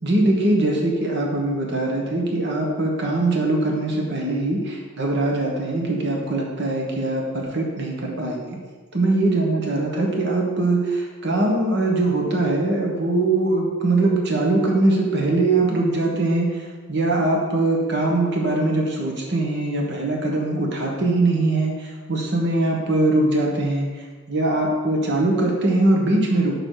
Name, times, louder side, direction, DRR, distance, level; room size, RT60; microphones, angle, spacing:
voice 1, 0.0-8.6 8.9-16.6 16.9-23.9 24.3-26.5, right 2 dB, 50° right, 0 dB, 1.2 m, -21 dB
6.7 x 4.8 x 4.8 m, 1.4 s
head